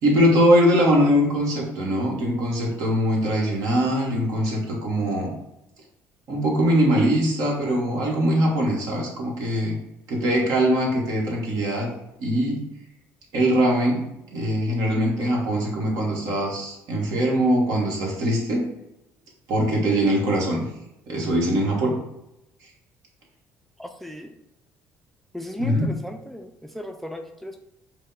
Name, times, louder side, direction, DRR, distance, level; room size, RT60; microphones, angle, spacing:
voice 1, 0.0-5.3 6.3-9.8 10.1-11.9 12.2-12.6 13.3-14.0 14.3-18.6 19.5-20.7 21.1-21.9 25.6-25.9, equal, 70° right, -2 dB, 1.3 m, -22 dB
voice 2, 23.8-24.3 25.3-27.6, left 1 dB, 5° left, 6 dB, 0.4 m, -36 dB
5.0 x 2.1 x 3.9 m, 0.89 s
supercardioid pair, 75°, 6 cm